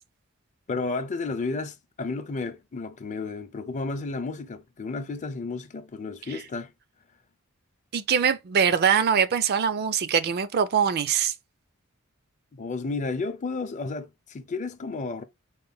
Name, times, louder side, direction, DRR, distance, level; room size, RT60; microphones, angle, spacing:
voice 1, 0.7-6.7 12.5-15.2, left 3 dB, 35° left, 0.5 m, -32 dB
voice 2, 7.9-11.3, right 7 dB, 50° right, 0.4 m, -23 dB
3.8 x 2.1 x 3.7 m
head